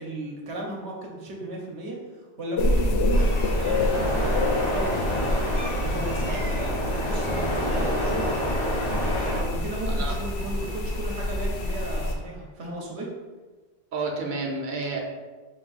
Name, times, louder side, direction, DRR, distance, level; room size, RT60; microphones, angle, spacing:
voice 1, 0.0-4.2 4.7-4.9 5.8-8.4 9.4-13.1, right 1 dB, 75° right, -2 dB, 1.0 m, -35 dB
sound 1, 2.6-12.1, left 1 dB, 70° left, 0.8 m, -27 dB
sound 2, 3.1-9.4, equal, 35° left, 0.6 m, -29 dB
voice 2, 13.9-15.0, right 3 dB, 50° right, 0 dB, 0.8 m, -30 dB
4.4 x 2.6 x 3.9 m, 1.3 s
omnidirectional pair, 1.1 m